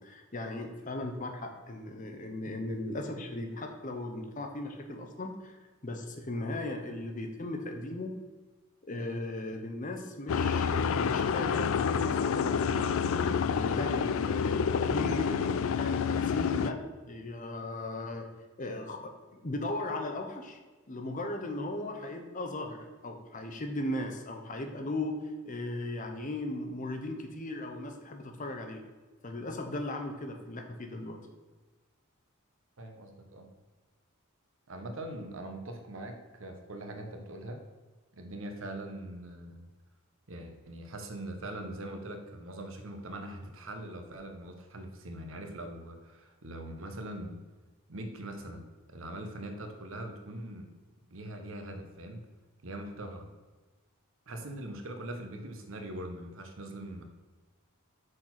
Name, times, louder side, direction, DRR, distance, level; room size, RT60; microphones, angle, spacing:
voice 1, 0.0-5.6 5.8-8.2 8.8-13.0 13.4-16.8 17.1-18.3 18.6-20.6 20.9-28.8 29.2-31.2, left 1 dB, 35° left, 4 dB, 0.8 m, -37 dB
sound 1, 10.3-16.7, left 6 dB, 65° left, 0.3 m, -28 dB
voice 2, 32.8-33.5 34.7-37.6 38.1-39.7 40.3-47.4 47.9-50.7 51.1-52.2 52.6-53.3 54.3-57.0, right 1 dB, 65° right, 5 dB, 1.0 m, -42 dB
6.4 x 4.4 x 5.8 m, 1.3 s
head